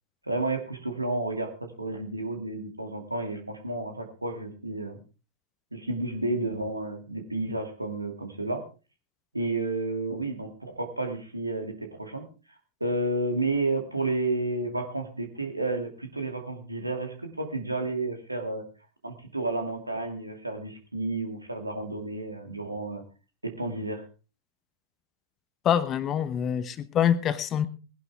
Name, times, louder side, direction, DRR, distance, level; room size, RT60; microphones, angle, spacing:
voice 1, 0.2-5.0 5.7-8.6 9.3-12.3 12.8-18.6 19.0-23.0 23.4-24.0, right 2 dB, 85° right, 5 dB, 2.5 m, -31 dB
voice 2, 25.6-27.7, left 9 dB, 30° left, 15 dB, 1.0 m, -25 dB
20.0 x 11.0 x 3.5 m, 0.33 s
figure-of-eight pair, 90°, 0 cm